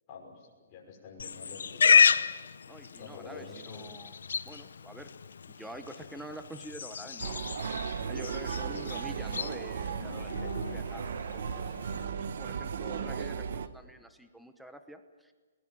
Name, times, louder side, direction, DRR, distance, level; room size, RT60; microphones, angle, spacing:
voice 1, 0.1-2.1 3.0-3.9 8.7-8.9 13.0-13.2 13.5-13.6, left 5 dB, 30° left, -1 dB, 6.0 m, -47 dB
Livestock farm animals working animals, 1.2-12.1, left 6 dB, 85° left, 0.8 m, -31 dB
voice 2, 2.7-4.1 4.4-5.1 5.6-7.4 8.1-11.7 12.2-15.3, right 1 dB, ahead, 8 dB, 1.0 m, -47 dB
sound 1, 7.2-13.7, right 6 dB, 60° right, 1.1 m, -35 dB
22.0 x 20.0 x 7.7 m, 1.4 s
hypercardioid pair, 165°, 0 cm